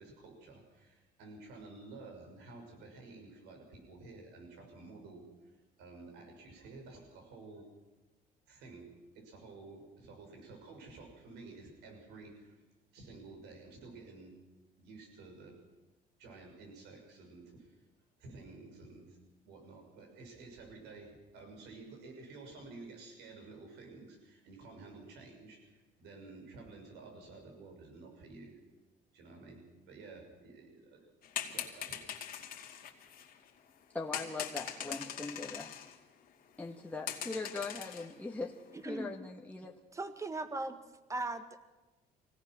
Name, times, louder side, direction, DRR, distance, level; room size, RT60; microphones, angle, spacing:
voice 1, 0.0-5.3 5.8-7.7 8.5-8.9 9.1-12.6 12.9-14.3 14.8-15.6 16.2-17.8 18.2-19.2 19.4-28.6 29.1-31.1 31.5-32.3, right 3 dB, 85° right, 2 dB, 6.2 m, -52 dB
sound 1, 31.2-33.5 34.1-36.0 36.2-36.3 36.7-36.8 37.1-38.2 38.5-38.8, left 9 dB, 60° left, 2.4 m, -42 dB
voice 2, 33.9-35.7 36.6-39.7, left 3 dB, 10° left, 0 dB, 1.6 m, -41 dB
voice 3, 38.7-39.1 39.9-40.8 41.1-41.6, right 2 dB, 20° right, 9 dB, 1.7 m, -38 dB
24.0 x 17.5 x 6.2 m, 1.1 s
cardioid pair, 110°, 17 cm